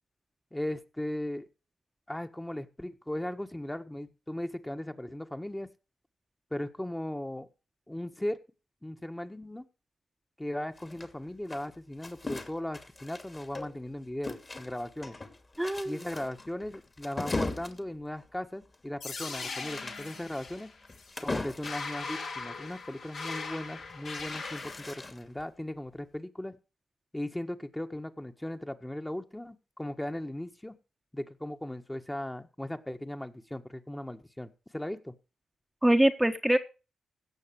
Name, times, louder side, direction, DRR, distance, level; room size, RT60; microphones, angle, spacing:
voice 1, 0.5-1.5 2.1-5.7 6.5-7.5 7.9-8.4 8.8-9.7 10.4-15.2 15.9-20.7 21.2-26.6 27.1-30.7 31.1-35.1, left 1 dB, 10° left, 6 dB, 1.6 m, -37 dB
sound 1, 10.8-13.9 14.2-21.9 23.8-25.4, left 3 dB, 35° left, 2.5 m, -39 dB
voice 2, 15.6-16.0 35.8-36.6, right 1 dB, 10° right, 4 dB, 1.3 m, -24 dB
sound 2, 19.0-25.0, left 4 dB, 70° left, 3.6 m, -40 dB
16.5 x 6.6 x 6.4 m, 0.33 s
supercardioid pair, 45°, 0 cm